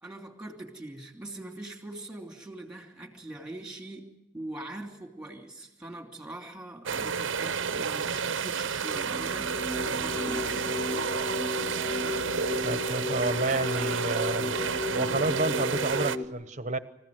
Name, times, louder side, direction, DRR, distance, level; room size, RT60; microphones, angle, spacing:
voice 1, 0.0-10.8, right 1 dB, 5° right, 4 dB, 2.8 m, -42 dB
sound 1, 6.9-16.2, right 6 dB, 75° right, 0.7 m, -31 dB
sound 2, 7.3-8.3 8.8-16.3, left 3 dB, 40° left, 2.8 m, -35 dB
voice 2, 12.6-14.5 15.0-16.8, right 2 dB, 35° right, 12 dB, 1.0 m, -30 dB
26.0 x 15.5 x 9.4 m, 0.92 s
head